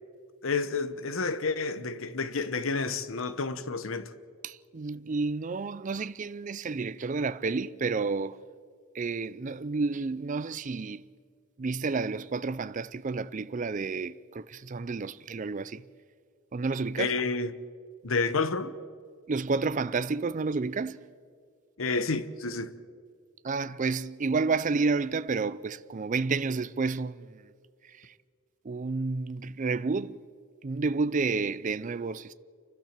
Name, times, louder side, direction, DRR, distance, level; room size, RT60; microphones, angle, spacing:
voice 1, 0.4-4.1 17.0-17.5 18.0-18.7 21.8-22.7, left 4 dB, 70° left, 1.0 m, -30 dB
voice 2, 4.4-8.4 8.9-11.0 11.6-15.8 16.5-17.1 19.3-21.0 23.4-27.4 27.9-28.1 28.6-30.2 30.6-32.3, right 4 dB, 35° right, 0.4 m, -30 dB
29.5 x 12.0 x 7.4 m
head